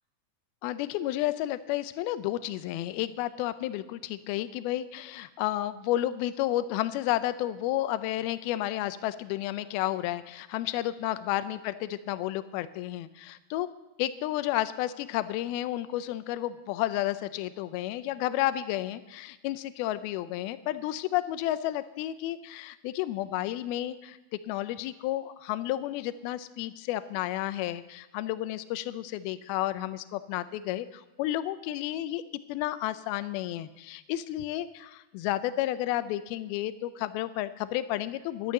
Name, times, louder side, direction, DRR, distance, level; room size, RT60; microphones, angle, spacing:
voice 1, 0.6-13.7 14.0-24.2 24.5-32.2 32.5-38.5, left 14 dB, 80° left, 13 dB, 2.2 m, -31 dB
12.5 x 12.0 x 6.6 m, 1.0 s
omnidirectional pair, 5.0 m